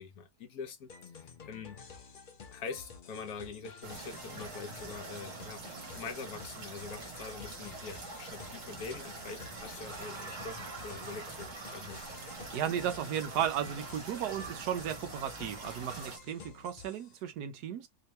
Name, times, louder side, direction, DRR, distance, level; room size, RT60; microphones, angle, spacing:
voice 1, 0.0-1.8 2.5-5.6 5.9-12.2, left 5 dB, 70° left, 1.2 m, -44 dB
sound 1, 0.9-17.2, left 5 dB, 50° left, 0.6 m, -51 dB
sound 2, 3.8-16.2, right 4 dB, 55° right, 1.5 m, -45 dB
voice 2, 12.5-17.9, right 9 dB, 80° right, 1.2 m, -35 dB
3.2 x 2.9 x 3.2 m
omnidirectional pair, 1.7 m